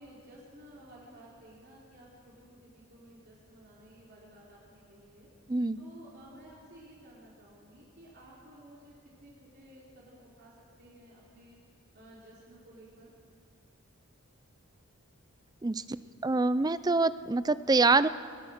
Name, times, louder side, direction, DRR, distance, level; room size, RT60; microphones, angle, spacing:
voice 1, 0.0-5.3 5.8-8.9 9.2-11.6 11.9-13.1, right 1 dB, 50° right, -6 dB, 4.0 m, -54 dB
voice 2, 16.2-18.1, right 3 dB, 20° right, 15 dB, 0.4 m, -25 dB
22.0 x 21.5 x 6.5 m, 2.2 s
head